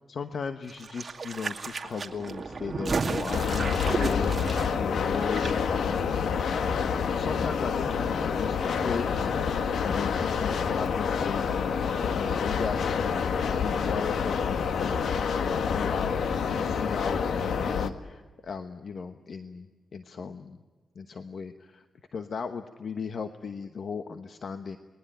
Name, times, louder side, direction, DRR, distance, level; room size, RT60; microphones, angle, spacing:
voice 1, 0.1-4.3 4.7-9.4 9.8-15.1 15.4-20.6 20.9-21.8 22.1-24.8, left 5 dB, 55° left, 9 dB, 1.1 m, -36 dB
sound 1, 0.7-5.5 5.8-5.9, right 4 dB, 35° right, 2.3 m, -33 dB
sound 2, 3.3-17.9, left 6 dB, 75° left, 1.4 m, -28 dB
30.0 x 21.5 x 9.1 m, 1.3 s
wide cardioid pair, 125°, 0 cm